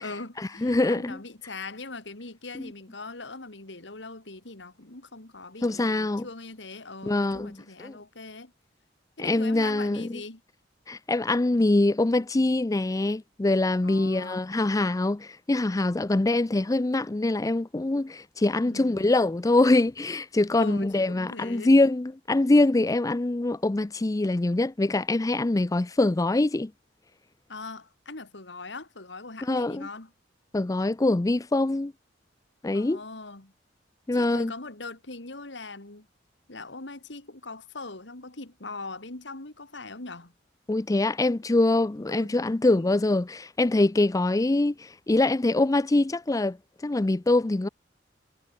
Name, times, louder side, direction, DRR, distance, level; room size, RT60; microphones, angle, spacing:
voice 1, 0.0-8.5 9.2-10.4 13.8-14.4 18.6-19.1 20.6-21.8 27.5-30.1 32.7-33.5 34.1-36.1 36.5-40.3 42.1-42.3 42.8-43.0, left 3 dB, 70° left, 2.6 m, -41 dB
voice 2, 0.6-1.2 2.6-2.7 5.6-6.3 7.0-7.5 7.8-7.9 9.2-10.2 10.9-26.7 29.5-29.9 30.5-31.9 32.6-33.0 34.1-34.5 40.7-44.7 45.1-46.6 46.8-47.7, left 2 dB, 20° left, 0.4 m, -24 dB
head